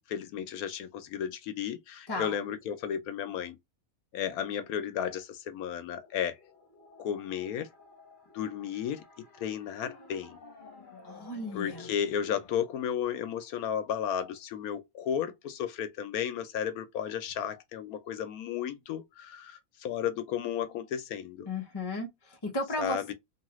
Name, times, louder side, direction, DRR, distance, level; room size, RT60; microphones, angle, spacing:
voice 1, 0.0-3.6 4.1-6.4 7.0-7.7 8.3-9.0 9.4-10.4 11.5-21.5 22.8-23.1, left 9 dB, 80° left, 1.0 m, -33 dB
voice 2, 2.1-2.4 11.0-11.9 21.4-23.1, left 2 dB, 20° left, 0.7 m, -35 dB
sound 1, 5.9-12.5, left 4 dB, 40° left, 1.1 m, -52 dB
2.9 x 2.3 x 3.0 m
omnidirectional pair, 1.5 m